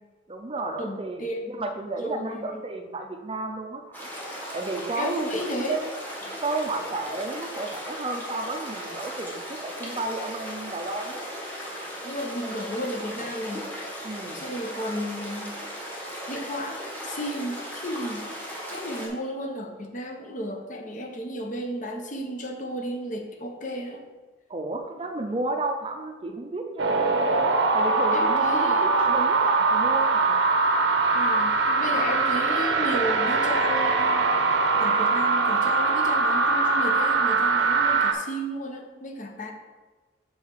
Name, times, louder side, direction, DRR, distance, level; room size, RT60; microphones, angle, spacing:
voice 1, 0.3-1.2 1.5-4.1 4.5-5.3 5.7-6.0 6.4-11.2 14.0-14.4 24.5-26.9 27.7-30.4, right 2 dB, 30° right, 4 dB, 0.5 m, -32 dB
voice 2, 0.8-1.6 2.0-2.6 5.0-5.8 12.0-14.0 14.3-15.5 16.3-24.0 28.1-28.9 31.1-34.5 34.8-39.5, equal, 40° left, 3 dB, 0.9 m, -33 dB
sound 1, 3.9-19.1, equal, 10° left, 1.2 m, -37 dB
sound 2, 26.8-38.1, right 3 dB, 75° right, 0.7 m, -22 dB
5.7 x 5.5 x 4.6 m, 1.3 s
head